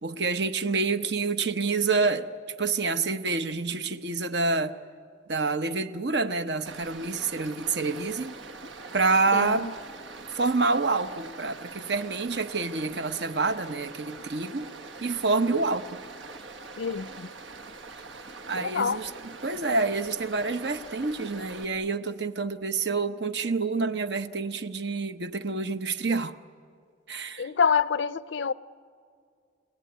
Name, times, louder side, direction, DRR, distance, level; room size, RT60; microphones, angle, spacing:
voice 1, 0.0-2.3 2.6-4.7 5.3-8.4 8.9-9.7 10.3-14.7 15.0-15.9 18.5-19.1 19.4-26.3 27.1-27.5, right 3 dB, 65° right, 0.9 m, -27 dB
Stream, 6.7-21.7, right 3 dB, 85° right, 1.4 m, -43 dB
voice 2, 9.3-9.7 16.8-17.3 18.6-19.0 27.4-28.5, left 6 dB, 80° left, 0.5 m, -26 dB
29.5 x 18.0 x 9.5 m
head